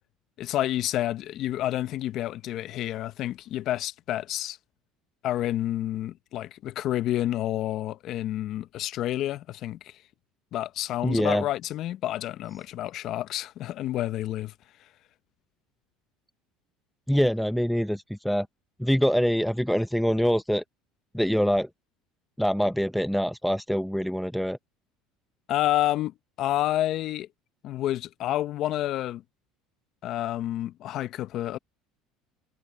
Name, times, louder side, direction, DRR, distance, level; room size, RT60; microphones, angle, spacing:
voice 1, 0.4-4.6 5.2-9.9 10.5-14.5 25.5-27.3 27.6-29.2 30.0-31.6, left 13 dB, 55° left, 0.8 m, -29 dB
voice 2, 11.0-11.4 17.1-18.5 18.8-20.6 21.1-21.7 22.4-24.6, equal, ahead, 0.6 m, -24 dB
supercardioid pair, 110°, 0 cm